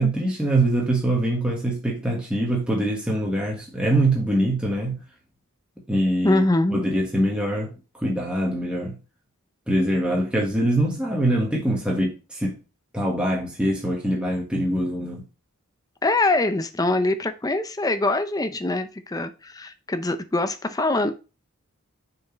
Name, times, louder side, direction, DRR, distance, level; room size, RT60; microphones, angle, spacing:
voice 1, 0.0-5.0 5.9-6.4 6.7-7.7 7.9-9.0 9.7-12.6 12.9-15.2, right 1 dB, 5° right, 1.4 m, -23 dB
voice 2, 6.2-6.8 16.0-21.1, left 2 dB, 15° left, 0.5 m, -23 dB
6.4 x 4.5 x 4.5 m
head